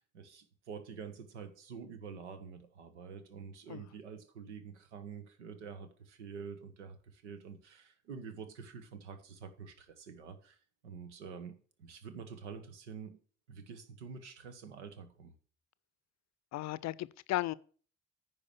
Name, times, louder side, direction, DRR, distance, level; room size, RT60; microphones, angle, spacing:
voice 1, 0.0-10.6 10.8-13.2 13.5-15.3, right 6 dB, 85° right, 1.1 m, -47 dB
voice 2, 16.5-17.5, left 16 dB, 50° left, 0.6 m, -35 dB
9.8 x 4.8 x 6.8 m
figure-of-eight pair, 45°, 34 cm